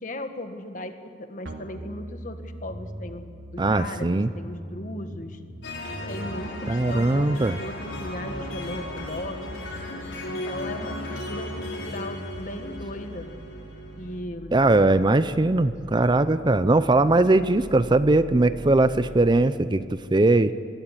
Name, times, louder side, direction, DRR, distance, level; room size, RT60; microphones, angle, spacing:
voice 1, 0.0-0.9 1.3-3.3 3.5-5.4 6.1-9.6 10.3-13.3 13.9-14.5 15.6-15.7, left 1 dB, 45° left, 7 dB, 1.6 m, -37 dB
sound 1, 1.4-19.4, equal, 80° right, 2.6 m, -42 dB
voice 2, 3.6-4.3 6.7-7.6 14.5-20.5, right 2 dB, 25° right, 13 dB, 0.5 m, -20 dB
sound 2, 5.6-14.2, left 1 dB, 90° left, 5.2 m, -36 dB
21.5 x 16.0 x 9.9 m, 2.3 s
head